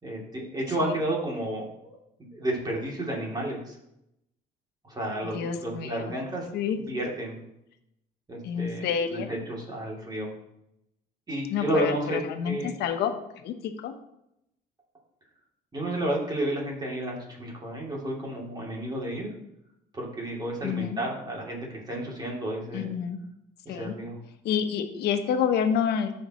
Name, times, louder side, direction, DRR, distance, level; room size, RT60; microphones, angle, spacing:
voice 1, 0.0-3.8 4.8-6.5 6.7-7.4 8.3-10.3 11.3-12.2 12.4-12.7 15.7-19.3 19.9-22.9 23.6-24.2, right 1 dB, 25° right, -3 dB, 2.9 m, -31 dB
voice 2, 5.2-6.0 6.5-6.8 8.4-9.4 11.5-13.1 13.4-13.9 20.6-21.0 22.7-23.2 23.7-24.0 24.4-26.1, left 7 dB, 75° left, 7 dB, 1.0 m, -28 dB
14.0 x 5.6 x 3.1 m, 0.83 s
cardioid pair, 110°, 17 cm